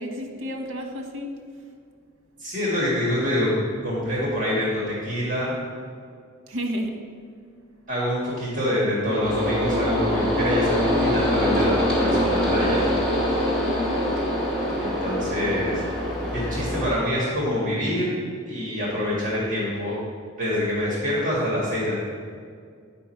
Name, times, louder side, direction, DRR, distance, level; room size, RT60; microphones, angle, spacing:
voice 1, 0.0-1.7 6.5-7.1 13.6-14.1, equal, 75° right, 3 dB, 1.0 m, -32 dB
voice 2, 2.4-3.5 3.8-5.5 7.9-12.8 14.8-15.8 16.3-18.1 18.5-20.0 20.4-21.9, equal, 40° right, -6 dB, 1.8 m, -26 dB
sound 1, 9.2-17.0, equal, ahead, 2.1 m, -24 dB
8.3 x 5.3 x 4.4 m, 2.2 s
head